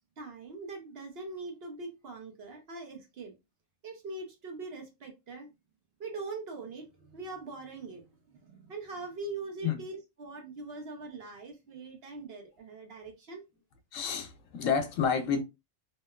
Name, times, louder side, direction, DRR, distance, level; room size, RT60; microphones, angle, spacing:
voice 1, 0.2-3.3 3.8-5.5 6.0-13.4, right 3 dB, 55° right, 0.9 m, -42 dB
voice 2, 13.9-15.4, left 6 dB, 80° left, 1.0 m, -29 dB
2.9 x 2.2 x 2.2 m
omnidirectional pair, 1.3 m